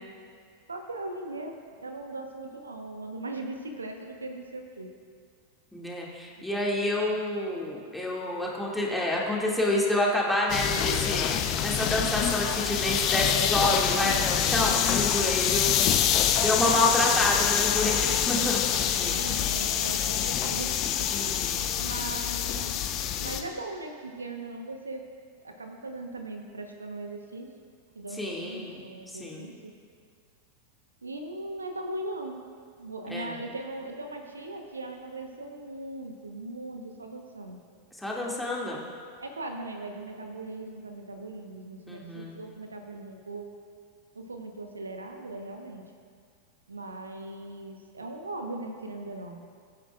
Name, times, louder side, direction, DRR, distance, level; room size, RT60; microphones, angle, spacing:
voice 1, 0.7-4.9 6.4-7.1 14.7-15.1 16.8-17.4 18.9-21.1 21.8-22.8 23.2-25.1 25.4-27.5 27.9-29.7 31.0-32.4 32.8-37.6 39.2-43.5 44.1-45.8 46.7-49.4, right 2 dB, 75° right, 4 dB, 1.1 m, -39 dB
voice 2, 5.7-19.2 21.1-21.6 28.2-28.9 29.2-29.5 33.1-33.4 38.0-38.8 41.9-42.4, left 1 dB, ahead, -4 dB, 2.2 m, -28 dB
sound 1, 10.5-23.4, left 9 dB, 35° left, 0.8 m, -26 dB
21.5 x 9.8 x 2.4 m, 2.1 s
figure-of-eight pair, 90°, 0 cm